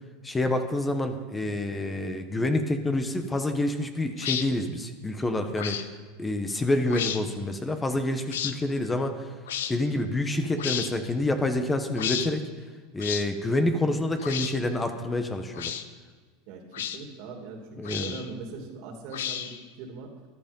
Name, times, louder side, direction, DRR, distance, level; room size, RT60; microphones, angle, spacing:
voice 1, 0.2-5.8 6.2-9.3 9.7-12.4 12.9-15.8 17.8-18.2, left 1 dB, 15° left, 6 dB, 1.1 m, -27 dB
sound 1, 4.2-4.5 5.5-5.9 6.9-7.2 8.3-8.5 9.5-9.7 10.6-10.9 11.9-12.3 13.0-13.3 14.2-14.5 15.5-15.8 16.7-17.0 17.8-18.3 19.1-19.6, left 9 dB, 90° left, 0.9 m, -32 dB
voice 2, 16.5-20.1, right 4 dB, 60° right, 3 dB, 2.8 m, -41 dB
14.5 x 11.5 x 5.4 m, 1.5 s
supercardioid pair, 125°, 0 cm